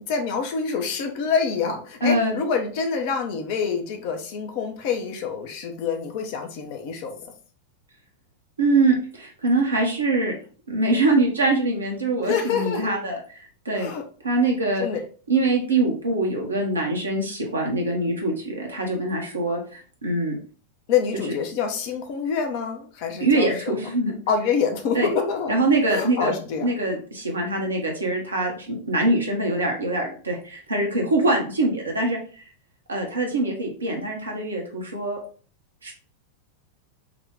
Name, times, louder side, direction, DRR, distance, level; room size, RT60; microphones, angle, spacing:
voice 1, 0.1-7.2 12.2-13.0 13.7-14.0 14.8-15.0 20.9-23.9 24.3-25.5 25.9-26.7, left 6 dB, 45° left, 4 dB, 0.7 m, -26 dB
voice 2, 2.0-2.4 8.6-10.3 10.7-13.2 13.6-13.9 14.2-14.8 15.3-20.4 23.2-24.1 24.9-25.1 25.5-26.3 26.6-32.4 32.9-35.2 35.8-35.9, right 2 dB, 75° right, 1 dB, 1.0 m, -23 dB
3.7 x 2.3 x 3.4 m, 0.41 s
figure-of-eight pair, 90°, 0 cm